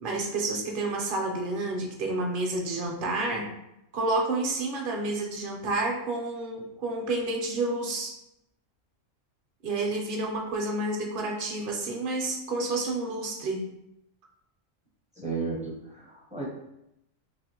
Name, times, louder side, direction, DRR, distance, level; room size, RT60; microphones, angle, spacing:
voice 1, 0.0-3.5 3.9-8.2 9.6-13.6, right 2 dB, 55° right, 1 dB, 0.7 m, -30 dB
voice 2, 15.2-16.4, right 4 dB, 10° right, -4 dB, 0.3 m, -34 dB
3.2 x 2.8 x 2.8 m, 0.83 s
omnidirectional pair, 1.3 m